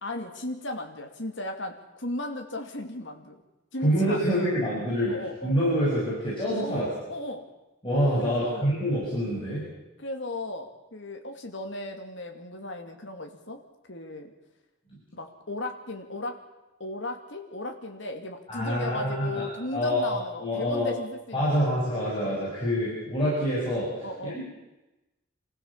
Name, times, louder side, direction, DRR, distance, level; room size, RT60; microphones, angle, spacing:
voice 1, 0.0-3.4 3.7-4.6 5.1-5.6 6.6-7.4 8.2-8.7 10.0-13.6 13.9-14.3 15.1-16.4 16.8-21.7 24.0-24.4, left 1 dB, 60° left, 4 dB, 2.6 m, -36 dB
voice 2, 3.8-5.1 5.4-6.9 7.8-9.6 18.5-19.4 19.7-20.9 21.3-24.4, equal, 25° left, -8 dB, 7.0 m, -26 dB
26.0 x 15.5 x 7.4 m, 1.0 s
head